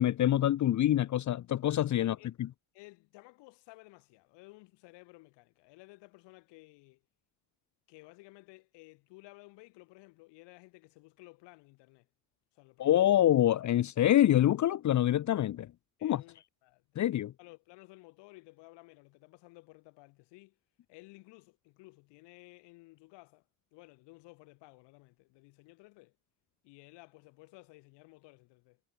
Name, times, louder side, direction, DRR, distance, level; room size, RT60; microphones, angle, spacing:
voice 1, 0.0-2.5 12.8-15.7 16.0-16.2 17.0-17.3, left 12 dB, 45° left, 0.9 m, -26 dB
voice 2, 2.0-2.3 2.7-7.0 7.9-12.1 12.5-13.2 16.0-20.6 20.9-23.4 23.7-26.2 26.6-28.8, left 24 dB, 85° left, 6.3 m, -56 dB
cardioid pair, 115°, 41 cm